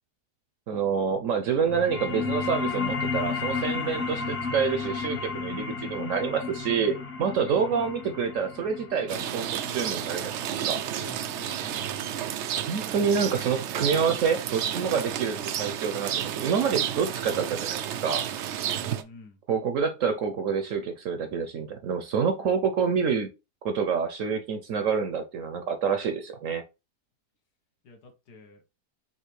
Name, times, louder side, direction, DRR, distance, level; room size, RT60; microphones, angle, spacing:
voice 1, 0.7-10.8 12.7-18.2 19.5-23.3 23.6-26.6, right 6 dB, 65° right, 0.9 m, -27 dB
sound 1, 1.6-12.7, left 5 dB, 40° left, 1.1 m, -33 dB
voice 2, 7.5-7.9 11.0-11.9 18.7-19.4 27.8-28.6, left 3 dB, 75° left, 1.7 m, -47 dB
Rain, 9.1-19.0, right 10 dB, 85° right, 0.6 m, -31 dB
5.7 x 2.8 x 3.2 m
omnidirectional pair, 1.8 m